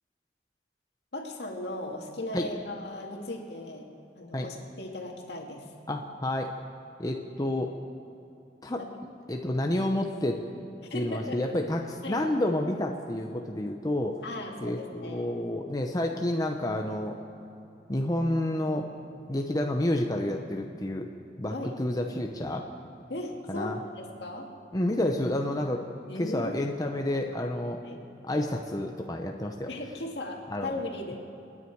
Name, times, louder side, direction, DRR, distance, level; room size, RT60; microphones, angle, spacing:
voice 1, 1.1-3.9 4.2-5.6 8.8-8.9 10.9-11.4 12.0-12.2 14.2-15.4 21.5-21.8 23.1-24.5 26.1-26.6 27.8-28.0 29.7-31.2, left 1 dB, 70° left, 1 dB, 2.1 m, -37 dB
voice 2, 5.9-6.5 7.0-7.7 8.6-8.9 9.3-10.4 10.9-14.2 14.6-17.2 17.9-18.9 19.3-21.1 21.4-22.7 23.5-23.8 24.7-25.8 26.1-27.8 28.2-29.7 30.5-30.8, left 1 dB, 20° left, 2 dB, 0.8 m, -29 dB
28.0 x 10.0 x 4.7 m, 2.8 s
head